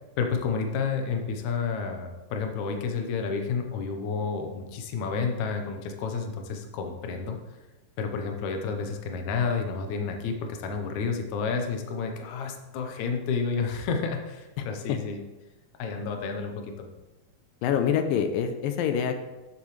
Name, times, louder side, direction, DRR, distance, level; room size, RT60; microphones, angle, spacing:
voice 1, 0.2-7.4 8.0-15.2 15.8-16.9, left 5 dB, 65° left, 4 dB, 2.2 m, -30 dB
voice 2, 14.6-15.0 17.6-19.2, left 8 dB, 90° left, 7 dB, 2.3 m, -26 dB
13.0 x 7.3 x 3.3 m, 1.1 s
omnidirectional pair, 4.0 m